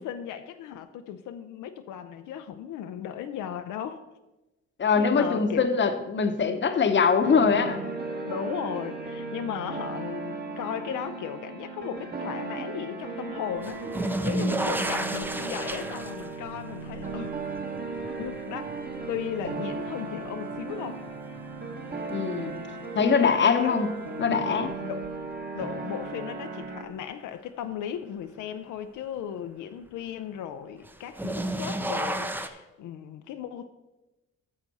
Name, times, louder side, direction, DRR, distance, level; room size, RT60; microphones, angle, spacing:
voice 1, 0.0-4.0 5.0-5.7 8.2-17.4 17.9-18.7 19.1-21.0 22.9-23.8 24.5-25.1 25.5-33.7, left 9 dB, 80° left, 8 dB, 0.5 m, -36 dB
voice 2, 4.8-7.8 22.1-22.6 23.0-23.9 24.2-24.7, left 5 dB, 40° left, 8 dB, 0.9 m, -23 dB
sound 1, 7.2-26.8, right 3 dB, 35° right, 1.1 m, -36 dB
sound 2, 13.6-20.6 21.1-21.8 23.4-23.5 25.0-25.1 30.9-32.5, right 1 dB, 5° right, 0.5 m, -32 dB
9.3 x 6.5 x 4.1 m, 1.0 s
cardioid pair, 90°, 30 cm